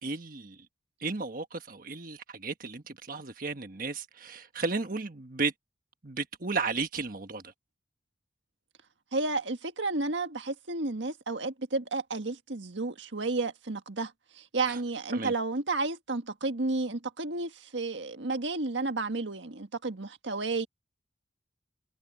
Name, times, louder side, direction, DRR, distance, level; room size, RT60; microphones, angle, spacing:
voice 1, 0.0-0.6 1.0-5.5 6.0-7.5 14.7-14.8 15.1-15.3, right 4 dB, 50° right, 1.3 m, -34 dB
voice 2, 9.1-20.7, right 3 dB, 75° right, 1.6 m, -32 dB
head